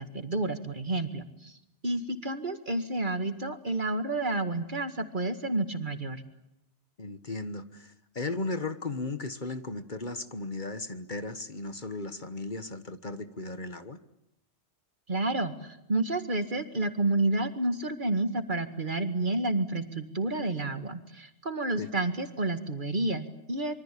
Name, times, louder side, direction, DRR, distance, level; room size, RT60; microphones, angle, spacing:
voice 1, 0.0-1.6 1.8-6.2 15.1-23.7, right 2 dB, 45° right, 9 dB, 2.1 m, -30 dB
voice 2, 7.0-14.0 21.8-21.9, left 3 dB, 45° left, 11 dB, 1.5 m, -36 dB
26.0 x 24.0 x 8.6 m, 0.82 s
omnidirectional pair, 1.2 m